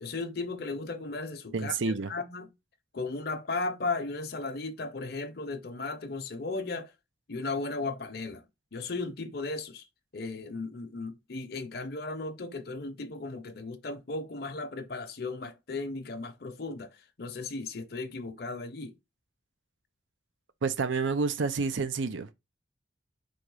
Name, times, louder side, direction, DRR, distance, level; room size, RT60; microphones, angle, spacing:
voice 1, 0.0-2.5 2.9-6.9 7.3-8.4 8.7-9.9 10.1-18.9, left 3 dB, 55° left, 0.7 m, -36 dB
voice 2, 1.5-2.1 20.6-22.3, right 4 dB, 80° right, 0.6 m, -29 dB
3.8 x 2.9 x 4.8 m
head